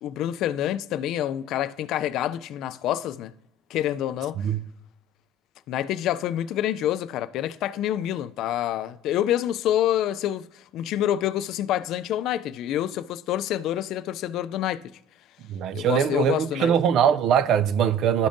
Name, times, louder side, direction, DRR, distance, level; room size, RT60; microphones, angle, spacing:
voice 1, 0.0-3.3 3.7-4.5 5.7-14.8 15.7-16.7, left 11 dB, 60° left, 0.3 m, -27 dB
voice 2, 15.5-18.3, right 8 dB, 55° right, 0.3 m, -22 dB
12.5 x 5.1 x 2.6 m
cardioid pair, 140°, 0 cm